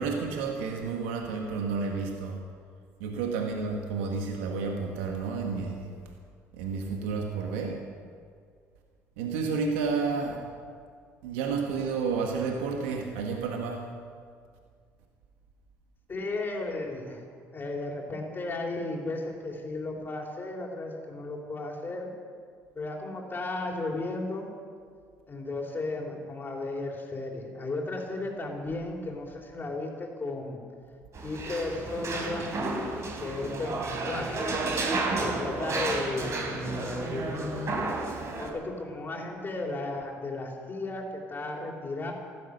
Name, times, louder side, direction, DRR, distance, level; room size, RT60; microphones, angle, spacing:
voice 1, 0.0-2.4 3.0-5.9 6.5-7.8 9.2-10.4 11.2-13.9, right 5 dB, 90° right, 2 dB, 1.5 m, -31 dB
voice 2, 16.1-17.2 17.5-22.1 22.7-24.5 25.3-30.6 31.2-32.6 33.2-34.5 35.2-37.8 38.4-42.1, left 2 dB, 35° left, 0 dB, 3.7 m, -34 dB
sound 1, 31.1-38.5, right 3 dB, 50° right, 3.5 m, -32 dB
15.0 x 12.5 x 6.6 m, 2.1 s
supercardioid pair, 70°, 6 cm